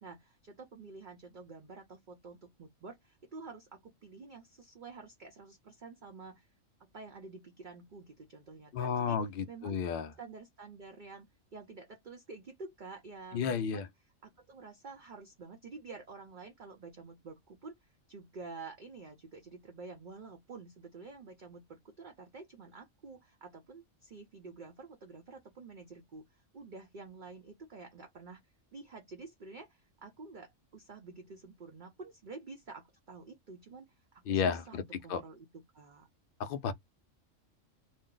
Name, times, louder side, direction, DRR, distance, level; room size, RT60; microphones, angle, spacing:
voice 1, 0.0-6.5 6.8-9.2 9.5-9.8 10.2-13.9 14.2-26.2 26.5-28.4 28.7-33.9 34.1-35.4 35.7-36.1, right 4 dB, 50° right, 0.6 m, -49 dB
voice 2, 8.7-10.1 13.3-13.9 34.3-35.2 36.4-36.7, left 6 dB, 65° left, 0.6 m, -32 dB
2.6 x 2.0 x 3.7 m
omnidirectional pair, 1.4 m